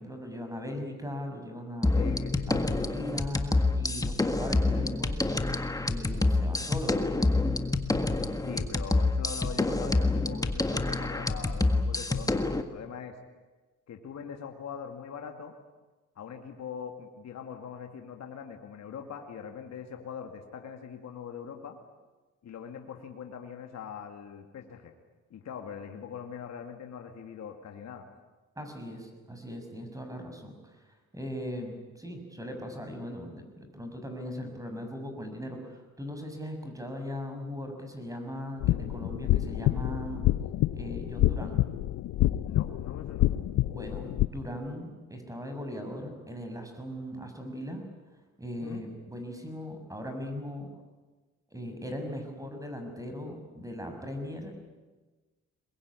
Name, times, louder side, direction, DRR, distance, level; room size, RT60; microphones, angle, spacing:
voice 1, 0.0-1.9 2.5-5.3 5.8-7.0 8.1-8.5 28.6-30.7 31.1-40.2 40.7-41.6 43.7-47.8 48.4-50.7 51.5-54.5, equal, 10° right, 5 dB, 6.3 m, -39 dB
sound 1, 1.8-12.6, left 2 dB, 10° left, 1.7 m, -27 dB
voice 2, 1.9-2.7 8.4-13.2 13.9-15.6 16.2-21.8 22.4-24.9 25.3-28.1 42.4-43.3 48.6-48.8, left 7 dB, 60° left, 4 dB, 2.4 m, -42 dB
sound 2, 38.6-44.3, left 14 dB, 80° left, 0.8 m, -27 dB
22.5 x 21.0 x 9.7 m, 1.3 s
cardioid pair, 90°, 30 cm